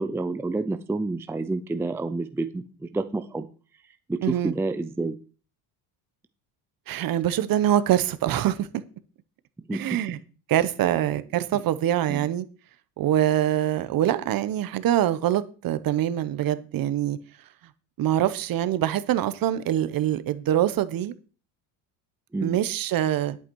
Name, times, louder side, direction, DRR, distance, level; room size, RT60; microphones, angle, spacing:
voice 1, 0.0-3.5 4.1-5.2 9.7-9.8 11.5-11.6 12.1-12.3 22.3-22.6, right 3 dB, 5° right, 0.5 m, -29 dB
voice 2, 4.2-4.5 6.9-8.7 9.7-10.2 10.5-12.5 13.0-17.2 18.0-21.1 22.4-23.4, right 11 dB, 50° right, 1.0 m, -24 dB
11.0 x 8.4 x 4.7 m
cardioid pair, 130°, 46 cm